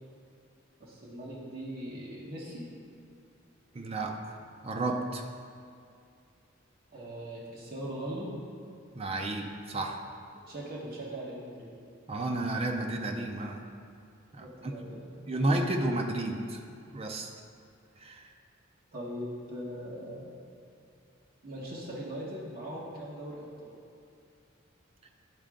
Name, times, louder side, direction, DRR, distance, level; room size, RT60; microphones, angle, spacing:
voice 1, 0.8-2.6 6.9-8.3 10.5-11.7 14.4-15.1 18.9-20.3 21.4-23.7, right 1 dB, 45° right, -6 dB, 1.3 m, -40 dB
voice 2, 3.7-4.4 4.6-5.2 8.9-10.0 12.1-13.6 14.3-14.7 15.3-16.6 16.9-17.3 18.0-18.3, right 2 dB, 30° right, 3 dB, 0.5 m, -32 dB
11.5 x 4.3 x 3.7 m, 2.4 s
head